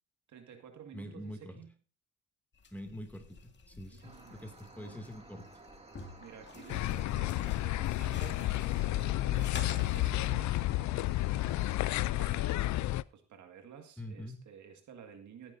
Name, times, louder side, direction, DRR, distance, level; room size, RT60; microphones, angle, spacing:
voice 1, 0.3-1.8 3.8-5.1 6.2-10.6 12.2-15.6, right 8 dB, 70° right, 2.1 m, -52 dB
voice 2, 0.9-1.5 2.7-5.5 14.0-14.4, equal, 5° left, 2.5 m, -45 dB
sound 1, 2.5-10.1, left 4 dB, 40° left, 2.1 m, -50 dB
sound 2, 4.0-12.3, right 2 dB, 20° right, 2.4 m, -55 dB
sound 3, 6.7-13.0, left 16 dB, 70° left, 0.4 m, -31 dB
16.5 x 10.5 x 2.7 m
cardioid pair, 90°, 30 cm